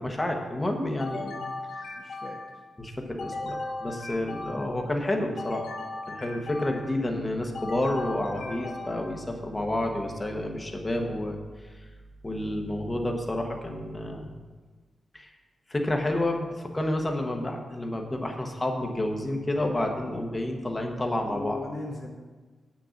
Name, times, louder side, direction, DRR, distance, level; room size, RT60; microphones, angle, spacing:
voice 1, 0.0-1.4 1.8-1.9 2.8-5.6 6.1-11.4 11.6-11.9 12.2-14.3 15.1-15.3 15.7-21.6, left 1 dB, 15° left, 2 dB, 1.2 m, -30 dB
sound 1, 1.0-2.7 3.2-4.9 5.4-7.0 7.5-9.3, left 2 dB, 80° left, 2.4 m, -37 dB
voice 2, 2.0-2.4 8.3-8.9 21.2-22.2, left 3 dB, 35° left, 0 dB, 0.8 m, -38 dB
8.7 x 6.4 x 7.1 m, 1.4 s
wide cardioid pair, 170°, 0 cm